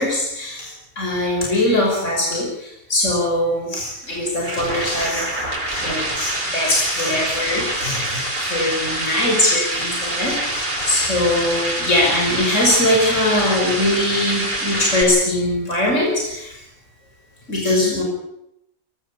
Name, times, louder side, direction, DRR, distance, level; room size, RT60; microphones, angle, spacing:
voice 1, 0.0-5.4 5.8-8.2 8.5-10.4 10.8-16.5 17.5-18.0, left 1 dB, 60° left, -1 dB, 6.1 m, -21 dB
sound 1, 4.0-15.0, right 1 dB, 35° right, 5.4 m, -25 dB
23.0 x 16.5 x 8.6 m, 0.80 s
omnidirectional pair, 1.5 m